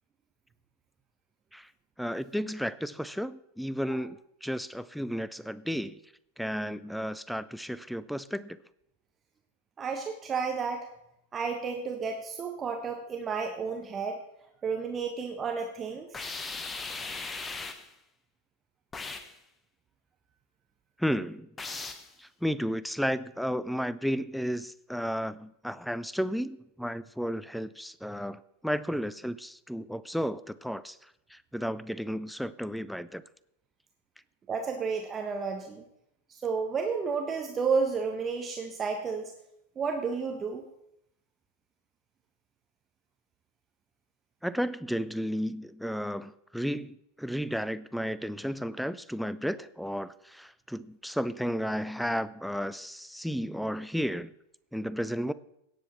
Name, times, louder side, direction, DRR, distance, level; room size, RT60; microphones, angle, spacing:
voice 1, 2.0-6.0 6.4-8.6 21.0-21.5 22.2-31.0 31.3-33.2 44.4-54.3 54.7-55.3, equal, ahead, 17 dB, 0.5 m, -33 dB
voice 2, 9.8-10.9 11.3-14.2 14.6-16.2 34.5-35.8 36.3-39.3 39.8-40.6, right 5 dB, 20° right, 3 dB, 1.2 m, -31 dB
sound 1, 16.1-17.9 18.9-19.4 21.6-22.1, left 3 dB, 15° left, 1.0 m, -38 dB
17.5 x 7.8 x 4.2 m, 0.77 s
figure-of-eight pair, 90°, 0 cm